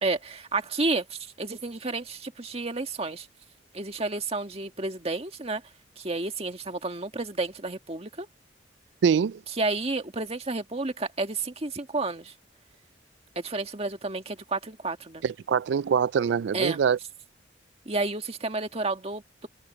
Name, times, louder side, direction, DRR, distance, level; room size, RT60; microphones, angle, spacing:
voice 1, 0.0-3.3 3.7-5.6 6.0-8.3 9.6-12.3 13.3-15.2 16.5-16.8 17.8-19.5, right 3 dB, 35° right, 1.7 m, -31 dB
voice 2, 9.0-9.4 15.2-17.0, right 7 dB, 70° right, 0.3 m, -24 dB
head